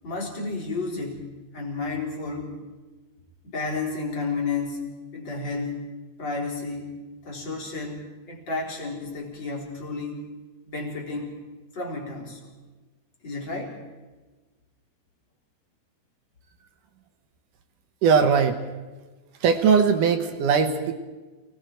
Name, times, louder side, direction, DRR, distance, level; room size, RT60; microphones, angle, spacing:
voice 1, 0.0-2.5 3.4-4.8 5.1-5.8 6.2-7.0 7.2-10.3 10.6-11.3 11.7-12.5 13.2-13.8, left 3 dB, 30° left, -1 dB, 4.4 m, -32 dB
voice 2, 18.0-18.7 19.4-20.9, right 6 dB, 65° right, 6 dB, 2.5 m, -20 dB
28.5 x 20.5 x 4.5 m, 1.2 s
omnidirectional pair, 4.3 m